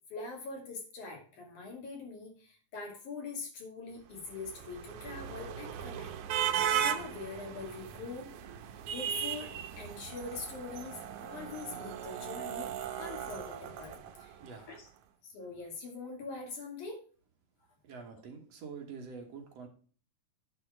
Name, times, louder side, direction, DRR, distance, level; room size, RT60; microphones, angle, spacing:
voice 1, 0.1-8.3 8.9-12.7 13.0-14.9 15.2-17.0, left 3 dB, 75° left, 0 dB, 3.9 m, -43 dB
sound 1, 4.2-14.5, right 9 dB, 85° right, 1.3 m, -37 dB
voice 2, 17.8-19.7, right 5 dB, 60° right, 2 dB, 2.4 m, -46 dB
9.7 x 4.3 x 6.0 m, 0.40 s
omnidirectional pair, 3.5 m